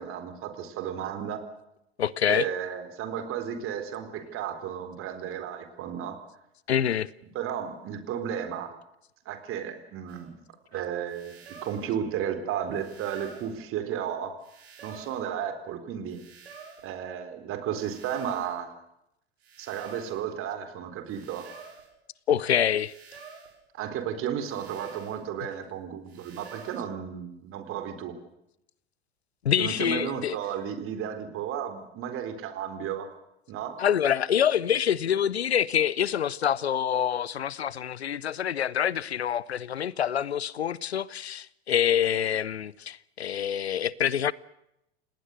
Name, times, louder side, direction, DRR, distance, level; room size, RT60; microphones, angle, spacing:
voice 1, 0.0-1.4 2.3-6.2 7.3-8.7 9.3-10.4 10.7-14.4 14.8-16.2 16.8-18.7 19.6-21.5 23.8-28.1 29.6-33.1 33.5-33.8, right 9 dB, 40° right, 4.2 m, -33 dB
voice 2, 2.0-2.5 6.7-7.1 22.3-22.9 29.4-30.4 33.8-44.3, left 9 dB, 80° left, 0.8 m, -26 dB
sound 1, 10.1-10.2 11.1-11.9 12.7-13.6 14.4-15.2 16.1-16.9 17.7-18.6 19.4-20.2 21.1-21.9 22.7-23.6 24.4-25.2 26.1-26.8, right 5 dB, 75° right, 7.7 m, -48 dB
29.5 x 18.5 x 6.6 m
figure-of-eight pair, 85°, 32 cm